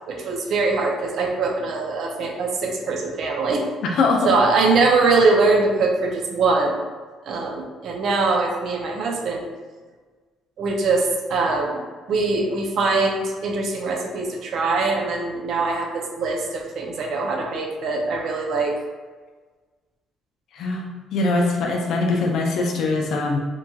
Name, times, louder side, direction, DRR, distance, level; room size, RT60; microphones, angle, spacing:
voice 1, 0.1-3.6 4.2-6.8 7.3-9.5 10.6-11.8 12.1-18.7, right 3 dB, 60° right, 1 dB, 0.4 m, -22 dB
voice 2, 3.9-4.3 20.5-23.4, left 3 dB, 65° left, 0 dB, 0.4 m, -22 dB
3.0 x 2.3 x 2.6 m, 1.4 s
cardioid pair, 130°, 0 cm